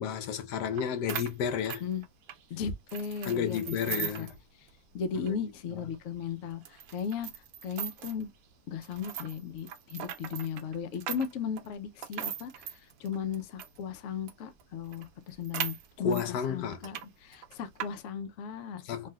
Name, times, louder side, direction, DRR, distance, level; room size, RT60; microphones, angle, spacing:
voice 1, 0.0-1.8 3.3-4.3 5.1-5.4 16.0-16.8 18.8-19.1, left 7 dB, 85° left, 1.3 m, -32 dB
sound 1, 0.8-0.9 1.1-2.4 2.9-4.4 4.7-4.8 5.2-5.3 5.9-6.0 6.6-8.2 8.8-13.8 14.3-14.4 14.6-14.7 14.9-16.3 16.7-17.1 17.3-17.9, right 10 dB, 70° right, 1.1 m, -39 dB
voice 2, 2.5-4.3 4.9-7.3 7.6-8.3 8.7-19.1, left 7 dB, 65° left, 0.8 m, -36 dB
3.3 x 2.6 x 2.3 m
omnidirectional pair, 1.8 m